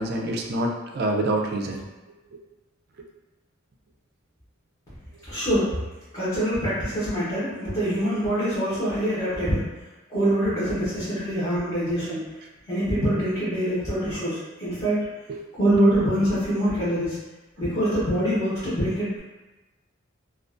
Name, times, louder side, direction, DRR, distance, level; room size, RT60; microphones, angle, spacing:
voice 1, 0.0-1.8 2.3-2.4 15.3-15.4, right 1 dB, 55° right, 1 dB, 0.3 m, -27 dB
voice 2, 5.3-5.7 6.1-9.6 10.1-12.3 12.7-15.1 15.5-17.2 17.6-19.2, equal, 30° left, -11 dB, 0.8 m, -24 dB
2.4 x 2.3 x 2.4 m, 1.1 s
head